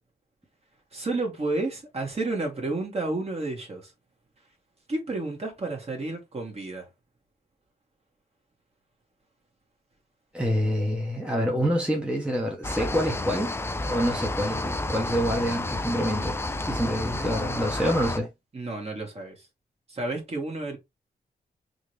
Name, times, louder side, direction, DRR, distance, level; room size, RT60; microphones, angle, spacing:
voice 1, 0.9-3.9 4.9-6.9 18.5-19.3 19.9-20.8, right 2 dB, 40° right, 1.8 m, -31 dB
voice 2, 10.3-13.6 13.8-16.4 16.7-18.3, equal, 5° right, 1.0 m, -27 dB
sound 1, 12.6-18.2, left 2 dB, 15° left, 0.4 m, -31 dB
3.6 x 2.9 x 3.3 m
cardioid pair, 95°, 16 cm